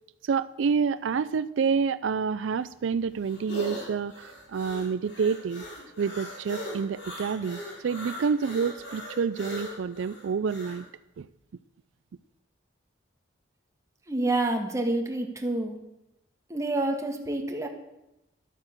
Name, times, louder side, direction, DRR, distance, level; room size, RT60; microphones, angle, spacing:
voice 1, 0.2-5.6 6.0-10.9 11.2-11.3, right 6 dB, 75° right, 15 dB, 0.4 m, -28 dB
sound 1, 2.6-10.8, left 1 dB, 65° left, 4.2 m, -40 dB
voice 2, 14.1-15.7 16.5-17.7, right 2 dB, 15° right, 3 dB, 1.6 m, -28 dB
12.0 x 8.9 x 7.3 m, 0.90 s
head